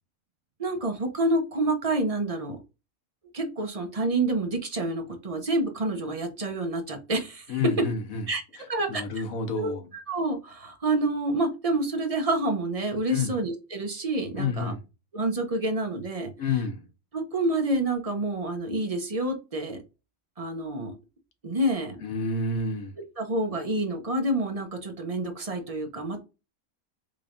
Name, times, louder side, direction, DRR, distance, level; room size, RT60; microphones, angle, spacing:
voice 1, 0.6-2.6 3.3-7.6 8.3-8.4 8.7-9.0 9.6-14.7 15.1-16.3 17.1-19.8 20.4-21.0 21.4-22.0 23.2-26.2, right 2 dB, 35° right, 0.6 m, -28 dB
voice 2, 7.5-8.2 8.9-9.9 13.1-13.3 14.4-14.8 16.4-16.8 22.0-23.0, left 4 dB, 75° left, 1.3 m, -29 dB
3.9 x 3.3 x 2.5 m
omnidirectional pair, 1.5 m